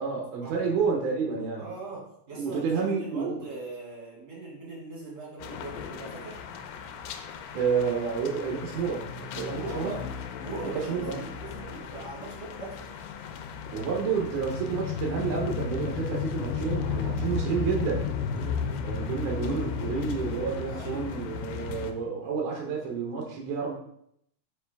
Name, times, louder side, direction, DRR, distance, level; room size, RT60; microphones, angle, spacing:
voice 1, 0.0-1.7 2.3-3.5 7.5-10.0 10.7-11.3 13.7-18.1 18.8-23.8, right 5 dB, 80° right, -1 dB, 1.8 m, -30 dB
voice 2, 1.6-6.4 9.4-10.0 10.4-12.9 18.3-18.8 20.7-21.3, right 3 dB, 30° right, -5 dB, 1.9 m, -41 dB
sound 1, 5.4-21.9, left 6 dB, 85° left, 2.7 m, -34 dB
5.4 x 5.3 x 3.4 m, 0.72 s
omnidirectional pair, 4.6 m